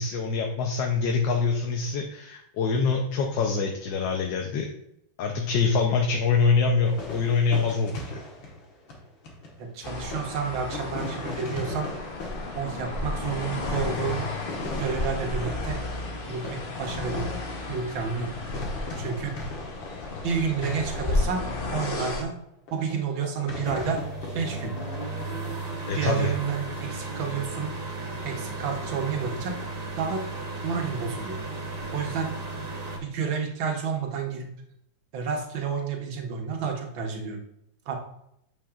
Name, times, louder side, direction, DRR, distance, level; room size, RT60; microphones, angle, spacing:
voice 1, 0.0-4.7 5.2-8.2 25.9-26.3, left 4 dB, 75° left, 2 dB, 1.4 m, -25 dB
sound 1, 6.8-9.6 10.1-18.3 18.5-21.8 22.2-22.3 22.7-22.9 23.2-25.5, left 2 dB, 90° left, 2.0 m, -38 dB
voice 2, 9.6-11.9 12.5-14.2 14.8-15.8 16.3-17.3 17.7-18.3 19.0-19.4 20.2-21.4 21.7-22.3 22.7-24.0 24.3-24.8 26.0-27.7 28.2-29.6 30.0-30.2 30.6-31.4 31.9-32.3 33.0-34.5 35.1-37.4 37.9-38.0, right 6 dB, 85° right, 3 dB, 1.8 m, -30 dB
sound 2, 9.8-22.2, left 2 dB, 40° left, 0.8 m, -33 dB
sound 3, 23.7-33.0, right 3 dB, 30° right, 0.7 m, -35 dB
8.5 x 5.3 x 2.4 m, 0.78 s
omnidirectional pair, 2.1 m